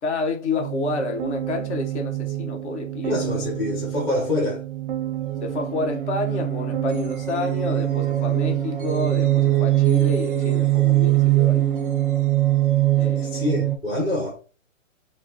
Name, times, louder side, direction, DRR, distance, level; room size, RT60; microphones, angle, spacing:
voice 1, 0.0-3.2 5.4-11.7 12.9-13.5, left 3 dB, 55° left, 1.1 m, -29 dB
sound 1, 0.6-13.8, right 14 dB, 40° right, 0.5 m, -23 dB
voice 2, 3.0-4.6 13.2-14.4, left 1 dB, 15° left, 0.6 m, -26 dB
4.8 x 2.0 x 2.8 m
hypercardioid pair, 145°, 40 cm